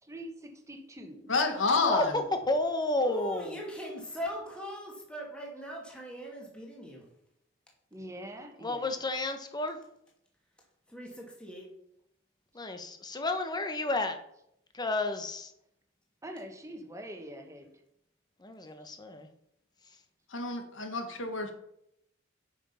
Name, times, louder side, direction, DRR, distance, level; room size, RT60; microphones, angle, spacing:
voice 1, 0.0-1.4 7.9-9.0 16.2-17.7, right 1 dB, 15° right, 3 dB, 1.5 m, -44 dB
voice 2, 1.3-2.2 20.3-21.5, left 3 dB, 80° left, 6 dB, 1.7 m, -29 dB
voice 3, 1.8-3.6 8.6-9.8 12.5-14.2 14.7-15.5 18.4-19.3, left 2 dB, 20° left, 7 dB, 1.1 m, -31 dB
voice 4, 3.0-7.1 10.9-11.7, equal, 5° left, -2 dB, 2.2 m, -40 dB
9.3 x 5.9 x 5.7 m, 0.75 s
head